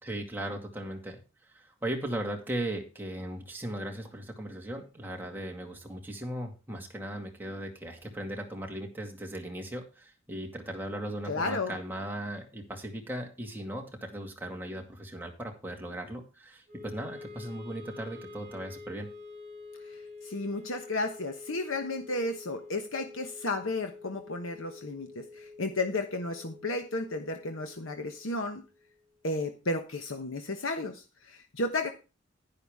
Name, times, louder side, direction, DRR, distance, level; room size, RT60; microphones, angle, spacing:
voice 1, 0.0-1.2 1.5-19.1, right 1 dB, 10° right, 1 dB, 2.1 m, -37 dB
voice 2, 11.3-11.7 20.2-28.6 29.2-31.9, left 2 dB, 90° left, 5 dB, 1.2 m, -33 dB
Wind instrument woodwind instrument, 16.7-28.9, left 3 dB, 40° right, 5.4 m, -48 dB
11.0 x 10.5 x 3.6 m, 0.31 s
head